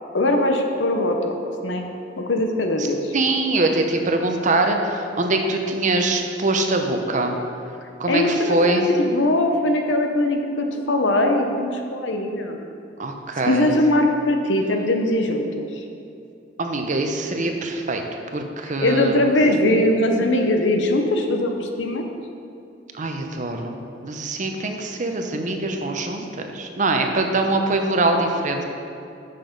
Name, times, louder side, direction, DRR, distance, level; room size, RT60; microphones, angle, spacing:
voice 1, 0.1-1.4 1.6-1.9 2.2-3.1 8.1-12.7 13.5-15.7 18.8-22.0, left 1 dB, 75° left, 4 dB, 0.8 m, -21 dB
voice 2, 3.1-7.4 8.0-8.9 13.0-13.7 16.6-18.0 18.3-19.3 22.9-26.3 26.5-28.6, right 2 dB, 40° right, 4 dB, 0.7 m, -23 dB
6.7 x 5.9 x 5.2 m, 2.6 s
head